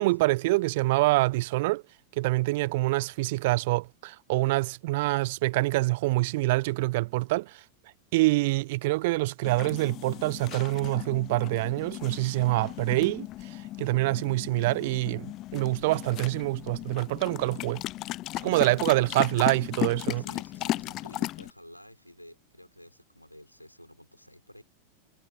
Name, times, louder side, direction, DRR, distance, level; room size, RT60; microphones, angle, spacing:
voice 1, 0.0-1.8 2.2-7.6 8.1-17.8 18.4-20.2, right 21 dB, 50° right, 1.0 m, -26 dB
sound 1, 9.4-21.5, left 16 dB, 35° left, 0.3 m, -36 dB
voice 2, 18.4-18.8 20.1-24.6, equal, 90° left, 6.8 m, -51 dB
figure-of-eight pair, 90°, 0 cm